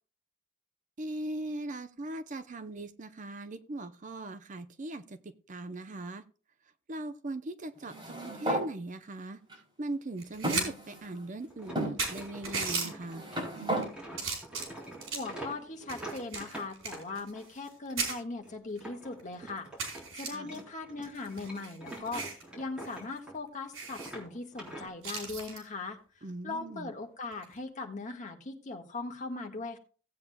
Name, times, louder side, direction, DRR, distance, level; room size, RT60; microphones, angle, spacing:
voice 1, 1.0-6.2 6.9-9.4 9.8-13.2 20.3-20.6 26.2-26.9, right 2 dB, 40° right, 0.6 m, -39 dB
sound 1, 7.8-8.7 9.5-9.6 10.4-11.3 11.8-12.0 12.8-13.9, right 1 dB, 25° right, 4.5 m, -33 dB
sound 2, 10.2-10.7 11.0-11.1 11.7-11.8 12.0-12.9 13.6-13.8 14.2-15.3 15.9-17.7 18.0-18.1 18.8-18.9 19.2-19.3 19.8-20.3 21.1-22.4 22.8-23.0 23.2-23.3 23.7-24.1 25.0-25.6 27.3-27.6, right 4 dB, 90° right, 4.7 m, -36 dB
sound 3, 11.5-17.5 17.9-20.1 20.4-23.5 23.8-24.9, right 1 dB, 5° right, 3.6 m, -46 dB
voice 2, 15.1-19.7 20.1-26.0 26.4-29.8, left 3 dB, 40° left, 1.6 m, -39 dB
17.0 x 8.5 x 2.2 m
head